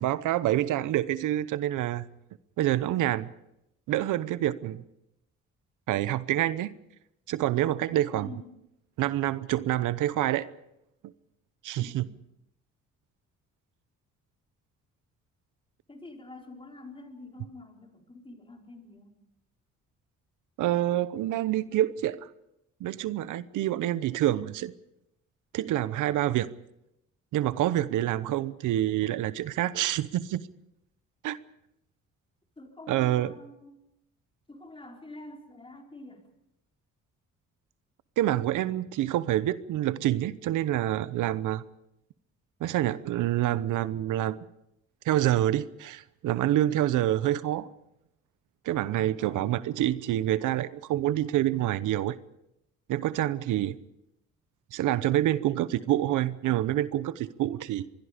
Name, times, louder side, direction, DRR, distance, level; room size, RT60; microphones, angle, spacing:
voice 1, 0.0-2.1 2.6-3.3 3.9-4.8 5.9-6.8 7.3-8.3 9.0-10.5 11.6-12.1 20.6-22.3 22.8-24.7 25.5-26.5 27.3-30.5 31.2-31.4 32.9-33.3 38.2-41.6 42.6-44.4 45.0-47.7 48.6-52.2 52.9-53.8 54.7-57.9, right 13 dB, 85° right, 0.9 m, -27 dB
voice 2, 8.1-8.6 11.8-12.1 15.9-19.1 32.6-33.8 34.5-36.2 49.2-49.6, left 2 dB, 15° left, 4.3 m, -47 dB
25.5 x 21.5 x 5.1 m
cardioid pair, 90°, 30 cm